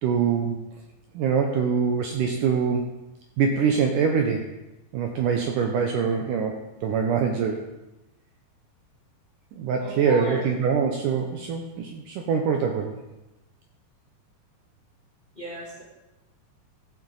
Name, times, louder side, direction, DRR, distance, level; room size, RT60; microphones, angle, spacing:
voice 1, 0.0-0.7 1.1-2.9 3.4-4.5 4.9-7.6 9.5-13.0, right 6 dB, 75° right, 2 dB, 2.0 m, -24 dB
voice 2, 9.8-10.4 15.3-15.8, right 1 dB, 20° left, -5 dB, 1.5 m, -34 dB
14.0 x 7.5 x 4.0 m, 1.0 s
omnidirectional pair, 4.5 m